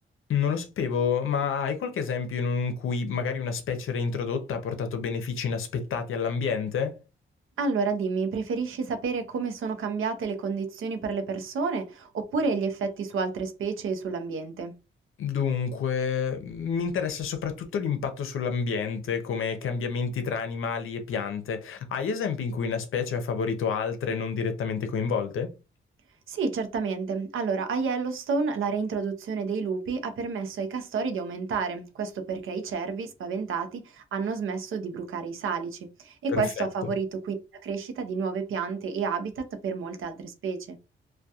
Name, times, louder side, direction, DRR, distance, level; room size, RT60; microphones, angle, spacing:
voice 1, 0.3-6.9 15.2-25.5 36.3-36.9, left 6 dB, 75° left, 0.6 m, -29 dB
voice 2, 7.6-14.7 26.3-37.3 37.6-40.8, right 5 dB, 75° right, 0.5 m, -30 dB
2.3 x 2.2 x 2.7 m
cardioid pair, 105°, 21 cm